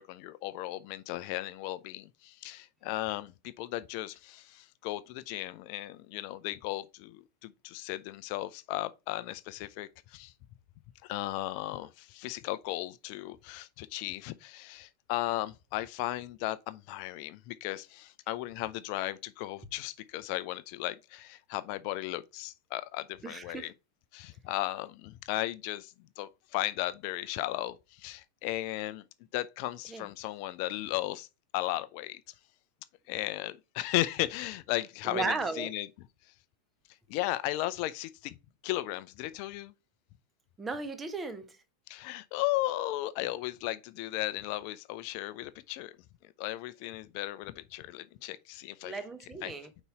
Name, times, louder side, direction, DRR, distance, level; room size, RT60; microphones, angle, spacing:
voice 1, 0.0-10.3 11.0-23.7 24.1-29.0 29.3-31.3 31.5-32.2 33.1-35.9 37.1-38.3 38.6-39.7 41.9-46.0 46.4-49.0 49.4-49.8, left 16 dB, 45° left, 0.5 m, -36 dB
voice 2, 23.2-23.7 29.9-30.0 35.0-35.7 40.6-41.5 48.8-49.7, right 3 dB, 15° right, 0.9 m, -35 dB
5.4 x 4.0 x 4.4 m
figure-of-eight pair, 90°, 0 cm